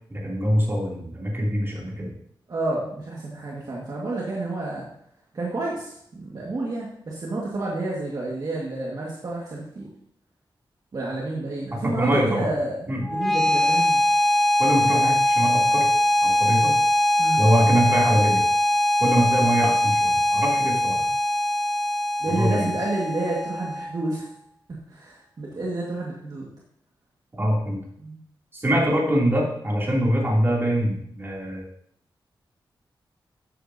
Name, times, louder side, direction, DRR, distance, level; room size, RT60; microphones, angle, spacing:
voice 1, 0.1-2.1 11.7-12.5 12.9-13.0 14.6-15.9 16.2-16.7 17.4-18.4 19.0-21.1 22.3-22.7 27.4-27.8 28.5-31.6, equal, 25° right, -4 dB, 3.0 m, -23 dB
voice 2, 2.5-4.9 5.3-9.9 10.9-14.0 17.2-17.4 22.2-24.2 24.9-26.5 28.0-28.2, right 2 dB, 50° right, -4 dB, 1.9 m, -30 dB
sound 1, 13.0-24.1, left 1 dB, 5° left, 0.6 m, -22 dB
13.0 x 8.4 x 2.8 m, 0.69 s
wide cardioid pair, 125°, 9 cm